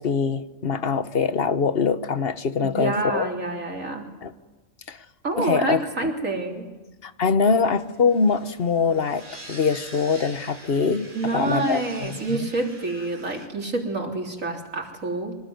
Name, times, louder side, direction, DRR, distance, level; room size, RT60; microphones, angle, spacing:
voice 1, 0.0-3.3 4.2-4.3 4.9-5.0 5.4-5.8 7.0-9.2 9.5-12.5, left 5 dB, 50° left, 12 dB, 1.3 m, -23 dB
voice 2, 2.6-4.1 5.2-6.7 11.1-15.4, right 2 dB, 75° right, 1 dB, 3.9 m, -27 dB
sound 1, 7.6-13.5, right 1 dB, 40° right, 3.3 m, -45 dB
25.0 x 20.0 x 9.5 m, 1.2 s
omnidirectional pair, 1.4 m